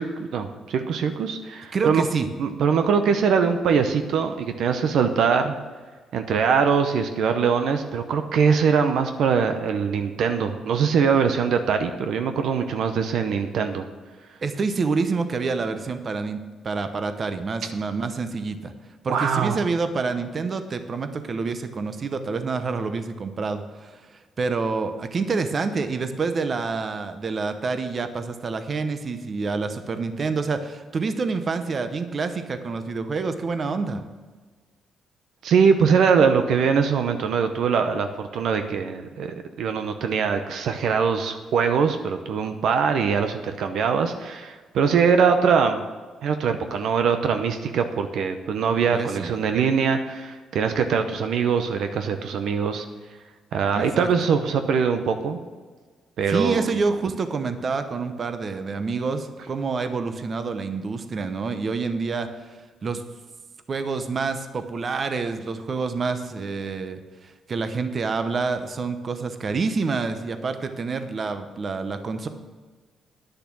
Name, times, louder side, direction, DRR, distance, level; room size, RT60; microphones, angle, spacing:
voice 1, 0.0-2.0 2.4-5.6 6.1-13.9 19.1-19.6 35.4-45.8 46.2-52.8 53.5-55.4 56.2-56.7, right 6 dB, 75° right, 7 dB, 0.8 m, -22 dB
voice 2, 1.7-2.3 14.4-18.7 19.0-34.0 48.9-49.3 53.8-54.1 56.3-63.0 63.7-72.3, right 4 dB, 45° right, 9 dB, 0.9 m, -27 dB
10.5 x 6.6 x 6.1 m, 1.4 s
cardioid pair, 90°, 0 cm